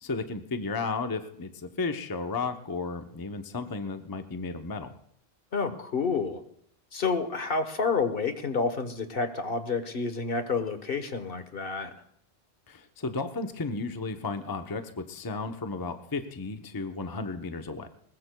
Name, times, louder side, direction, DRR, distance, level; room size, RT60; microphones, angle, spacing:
voice 1, 0.0-4.9 12.7-17.9, left 3 dB, 25° left, 7 dB, 0.7 m, -34 dB
voice 2, 5.5-6.4 6.9-11.9, left 4 dB, 55° left, 8 dB, 1.3 m, -29 dB
21.0 x 20.5 x 2.2 m, 0.68 s
omnidirectional pair, 1.1 m